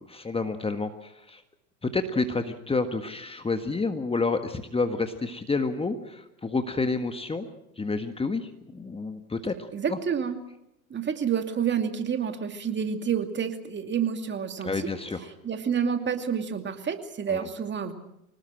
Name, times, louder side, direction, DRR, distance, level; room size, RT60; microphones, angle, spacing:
voice 1, 0.1-1.4 1.8-7.5 7.8-10.0 14.6-15.2 17.3-17.5, left 3 dB, 15° left, 7 dB, 1.6 m, -29 dB
voice 2, 9.7-10.4 10.9-14.9 15.4-17.9, right 7 dB, 25° right, 6 dB, 2.5 m, -29 dB
25.0 x 19.0 x 7.6 m, 0.84 s
hypercardioid pair, 85°, 43 cm